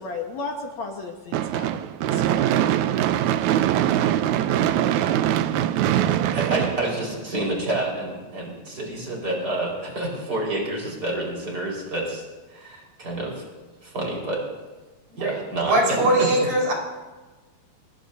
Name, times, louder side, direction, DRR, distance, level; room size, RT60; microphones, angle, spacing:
voice 1, 0.0-2.5, left 3 dB, 60° left, 1 dB, 2.3 m, -34 dB
Gunshot gunfire / Fireworks, 1.3-7.6, right 11 dB, 80° right, 1.8 m, -22 dB
voice 2, 6.3-12.2 12.5-13.5 13.8-14.4 15.1-16.5, right 2 dB, 25° right, -2 dB, 5.2 m, -28 dB
voice 3, 15.6-16.7, right 1 dB, 55° right, -2 dB, 6.2 m, -21 dB
26.0 x 20.0 x 2.8 m, 1.2 s
omnidirectional pair, 3.9 m